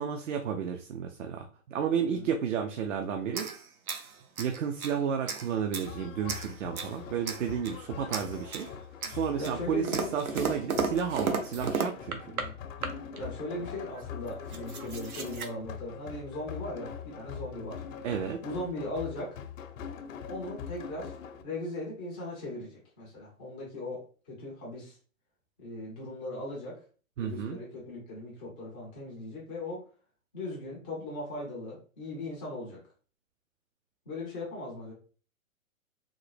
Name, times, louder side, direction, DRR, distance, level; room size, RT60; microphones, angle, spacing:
voice 1, 0.0-3.5 4.4-8.7 9.1-9.9 10.1-12.2 18.0-18.4 27.2-27.6, right 7 dB, 60° right, 5 dB, 0.5 m, -32 dB
voice 2, 2.0-2.3 9.4-10.1 12.1-12.6 13.2-17.8 18.4-19.4 20.3-21.2 21.4-25.0 25.6-26.8 27.2-29.9 30.3-32.8 34.1-34.9, left 2 dB, 10° left, -5 dB, 0.3 m, -38 dB
sound 1, 3.3-5.0 5.3-5.9 6.3-7.0 7.2-7.8 8.1-8.7 9.0-12.5 12.8-13.2 14.0-14.1 14.3-15.5, right 5 dB, 90° right, 0.8 m, -35 dB
sound 2, 5.8-21.4, left 7 dB, 65° left, 0.7 m, -43 dB
3.6 x 2.0 x 3.1 m, 0.39 s
hypercardioid pair, 125°, 42 cm